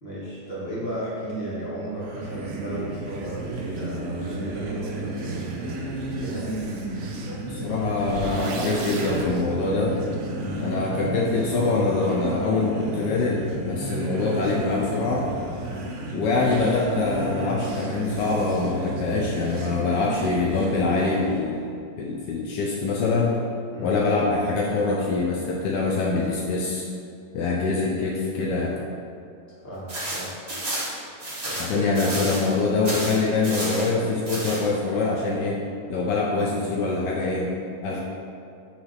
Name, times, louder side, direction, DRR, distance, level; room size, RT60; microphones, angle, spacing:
voice 1, 0.0-6.7 10.4-10.6 15.7-15.9 23.7-23.9 29.6-30.3 31.4-32.0, right 1 dB, 35° left, -8 dB, 1.8 m, -35 dB
sound 1, 2.0-21.5, right 2 dB, 60° right, 0.8 m, -32 dB
voice 2, 7.5-10.0 10.6-15.3 16.1-23.4 23.8-26.8 27.3-28.8 31.6-35.6 35.9-37.6 37.8-38.0, left 3 dB, 75° left, -2 dB, 1.2 m, -24 dB
sound 2, 8.1-9.3, right 3 dB, 85° right, 1.5 m, -34 dB
sound 3, 29.9-32.5 32.8-33.9 34.2-34.6, right 1 dB, 25° right, 1.2 m, -31 dB
6.0 x 3.4 x 5.5 m, 2.5 s
omnidirectional pair, 1.9 m